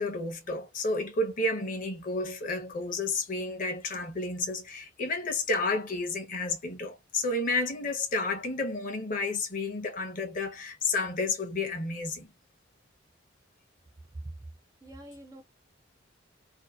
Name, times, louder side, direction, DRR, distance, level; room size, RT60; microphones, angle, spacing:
voice 1, 0.0-12.3, left 2 dB, 40° left, 0.6 m, -31 dB
voice 2, 14.8-15.4, right 1 dB, 15° right, 0.3 m, -43 dB
2.6 x 2.1 x 2.2 m
head